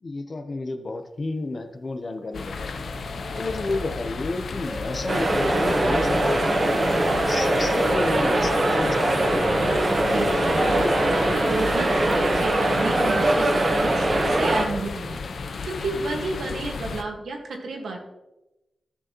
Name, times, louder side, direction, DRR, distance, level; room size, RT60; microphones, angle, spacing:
voice 1, 0.0-2.9 3.4-9.4, left 2 dB, 45° left, 7 dB, 0.8 m, -31 dB
sound 1, 1.4-10.4, equal, 5° right, 2.5 m, -38 dB
sound 2, 2.3-17.0, left 4 dB, 75° left, 0.6 m, -33 dB
sound 3, 5.1-14.7, right 1 dB, 45° right, 1.3 m, -22 dB
voice 2, 10.0-15.2 15.6-18.0, right 3 dB, 90° right, 2 dB, 1.6 m, -31 dB
13.5 x 6.6 x 3.0 m, 0.96 s
wide cardioid pair, 105°, 0 cm